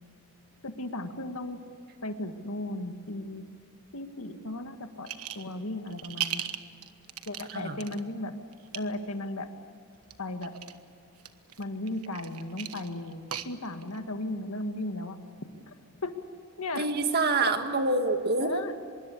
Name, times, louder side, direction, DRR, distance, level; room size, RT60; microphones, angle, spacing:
voice 1, 0.6-1.6 2.0-3.4 3.9-6.4 7.3-8.3 8.7-9.5 10.2-10.5 11.6-15.2 15.7-15.8 16.0-16.1 16.6-16.9 17.4-17.5 18.4-18.7, left 1 dB, 70° left, 7 dB, 1.9 m, -35 dB
sound 1, 5.1-5.5 5.9-8.0 8.5-8.8 10.0-10.8 11.2-14.0, right 10 dB, 85° right, 1.3 m, -37 dB
voice 2, 16.8-18.5, right 3 dB, 45° right, 6 dB, 1.9 m, -26 dB
25.0 x 22.5 x 8.5 m, 2.4 s
head